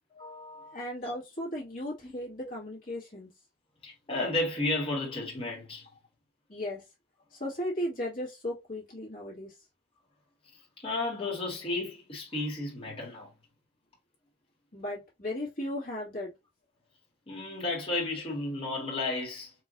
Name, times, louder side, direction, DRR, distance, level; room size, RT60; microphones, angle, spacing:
voice 1, 0.1-0.8 1.0-1.1 2.0-2.1 3.8-5.9 10.8-13.3 17.3-19.5, left 2 dB, 35° left, 2.0 m, -33 dB
voice 2, 0.7-3.3 6.5-6.8 7.3-9.5 14.7-16.3, left 1 dB, 50° left, 1.9 m, -36 dB
4.6 x 3.0 x 2.6 m
head